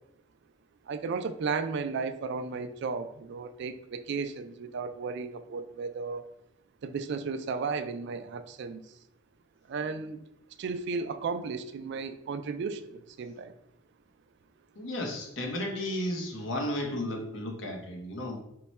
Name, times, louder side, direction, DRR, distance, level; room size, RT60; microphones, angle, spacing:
voice 1, 0.9-6.3 6.8-8.8 9.7-10.2 10.6-13.5, right 4 dB, 60° right, 10 dB, 0.3 m, -34 dB
voice 2, 14.8-18.4, left 1 dB, 65° left, 1 dB, 0.8 m, -33 dB
4.6 x 2.2 x 4.1 m, 0.81 s
head